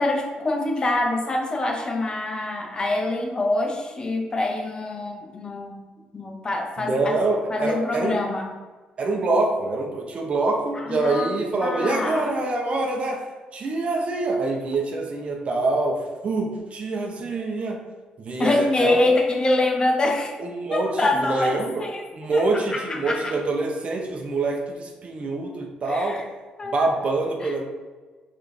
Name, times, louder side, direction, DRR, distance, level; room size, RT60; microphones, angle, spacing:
voice 1, 0.0-5.8 6.1-7.2 7.5-8.5 10.7-11.3 11.6-12.3 18.4-20.3 20.7-23.3 25.8-26.3 26.6-27.0 27.4-27.5, left 2 dB, 30° left, 2 dB, 0.7 m, -25 dB
voice 2, 6.8-8.2 9.0-13.2 13.5-17.8 18.2-19.0 20.4-21.8 22.1-26.2 26.6-27.6, right 2 dB, 45° right, 1 dB, 0.9 m, -25 dB
4.9 x 3.3 x 3.2 m, 1.3 s
cardioid pair, 90°, 3 cm